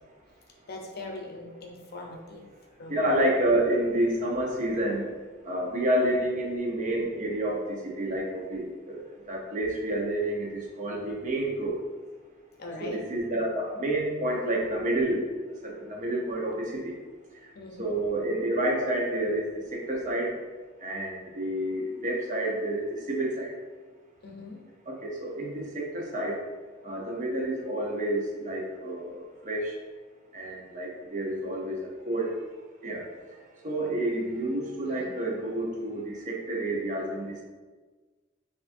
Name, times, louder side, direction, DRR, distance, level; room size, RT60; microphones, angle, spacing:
voice 1, 0.7-2.4 2.8-3.2 12.6-13.0 17.5-17.9 24.2-24.6 34.9-35.1, left 2 dB, 50° left, 0 dB, 0.6 m, -41 dB
voice 2, 2.9-5.1 5.4-11.8 12.8-15.3 15.6-17.0 17.4-17.5 17.8-20.4 20.8-23.5 24.9-26.4 26.8-29.8 30.3-37.4, right 1 dB, 40° right, -1 dB, 0.7 m, -29 dB
5.9 x 2.5 x 2.5 m, 1.4 s
head